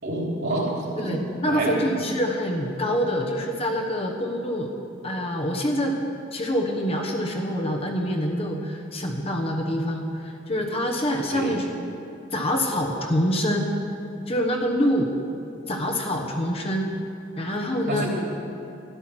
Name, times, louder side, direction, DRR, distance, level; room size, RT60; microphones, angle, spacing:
voice 1, 0.0-1.1 1.5-1.8 11.3-11.6 17.9-18.1, right 2 dB, 55° right, -3 dB, 3.3 m, -27 dB
voice 2, 1.0-4.7 5.0-6.0 6.3-11.7 12.3-13.8 14.3-15.1 15.7-16.9 17.4-18.0, equal, 30° left, 1 dB, 1.1 m, -26 dB
12.5 x 10.5 x 6.1 m, 2.6 s
head